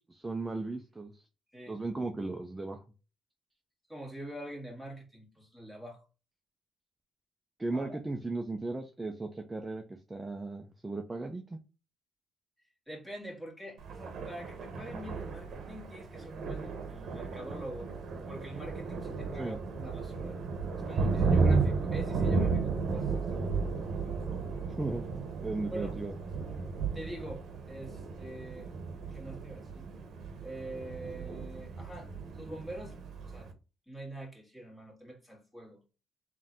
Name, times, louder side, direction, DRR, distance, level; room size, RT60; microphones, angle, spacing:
voice 1, 0.1-1.2 1.7-2.8 7.6-11.6 19.4-19.6 24.8-25.0 25.4-26.1, right 2 dB, 15° right, 0.7 m, -36 dB
voice 2, 3.9-6.0 7.7-8.0 12.9-17.9 18.2-20.4 20.8-23.3 25.7-26.0 26.9-28.7 29.1-29.9 30.4-33.5 33.9-35.8, right 1 dB, 5° left, 2.1 m, -45 dB
Thunder, 13.8-33.5, right 4 dB, 65° right, 0.9 m, -34 dB
3.7 x 2.7 x 3.6 m
cardioid pair, 90°, 0 cm